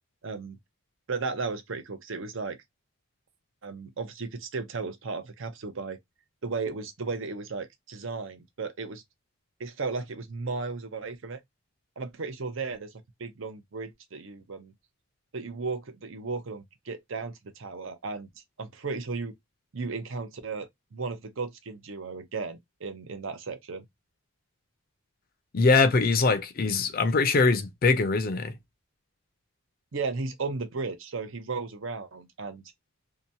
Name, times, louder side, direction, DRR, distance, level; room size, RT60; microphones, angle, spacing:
voice 1, 0.2-0.6 1.1-2.6 3.6-6.0 6.4-9.0 9.6-11.4 12.0-12.9 13.2-14.7 15.3-18.3 18.6-19.3 19.7-23.9 29.9-32.7, right 4 dB, 65° right, 0.6 m, -35 dB
voice 2, 25.5-28.6, left 3 dB, 45° left, 0.5 m, -22 dB
2.8 x 2.2 x 2.6 m
head